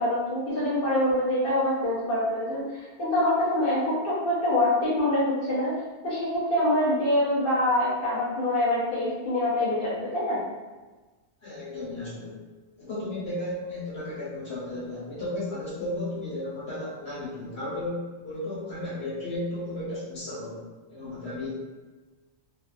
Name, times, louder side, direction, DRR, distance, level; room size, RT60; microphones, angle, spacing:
voice 1, 0.0-10.4, left 1 dB, 55° left, -8 dB, 0.8 m, -25 dB
voice 2, 11.4-12.4 12.8-20.6 20.9-21.5, left 1 dB, 75° left, -9 dB, 1.4 m, -34 dB
2.6 x 2.3 x 2.3 m, 1.3 s
omnidirectional pair, 1.1 m